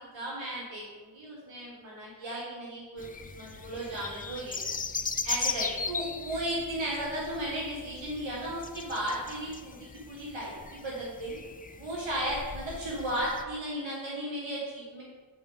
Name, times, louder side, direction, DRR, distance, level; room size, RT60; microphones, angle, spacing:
voice 1, 0.0-3.1 3.3-4.6 5.2-11.4 11.8-15.0, right 1 dB, 65° right, -5 dB, 1.5 m, -35 dB
sound 1, 3.0-13.4, left 4 dB, 20° left, 0.3 m, -38 dB
9.4 x 3.3 x 3.5 m, 1.3 s
cardioid pair, 50°, 48 cm